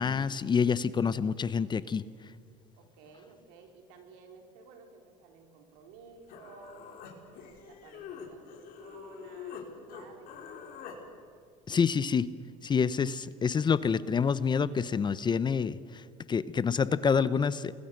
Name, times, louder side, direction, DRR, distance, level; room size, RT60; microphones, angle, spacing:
voice 1, 0.0-2.0 11.7-12.3 12.6-17.7, left 6 dB, 25° left, 16 dB, 0.8 m, -27 dB
voice 2, 2.8-10.9 15.2-15.5, right 4 dB, 75° right, 3 dB, 4.3 m, -54 dB
Human voice, 5.9-6.0 6.3-9.6 9.9-11.0, left 7 dB, 60° left, 4.7 m, -45 dB
28.5 x 21.0 x 6.6 m, 2.2 s
supercardioid pair, 95°, 16 cm